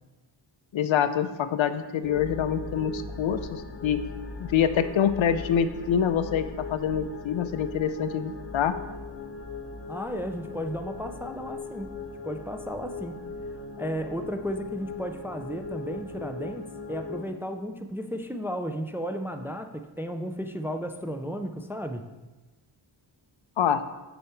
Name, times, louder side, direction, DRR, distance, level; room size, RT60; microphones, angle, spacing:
voice 1, 0.7-4.0 4.4-8.7 23.6-23.8, left 8 dB, 70° left, 11 dB, 0.6 m, -26 dB
sound 1, 2.0-17.2, left 4 dB, 25° left, 0.8 m, -39 dB
voice 2, 9.9-11.9 12.2-13.2 13.8-22.1, equal, 5° right, 6 dB, 0.4 m, -34 dB
6.8 x 5.6 x 4.4 m, 1.1 s
wide cardioid pair, 90°, 49 cm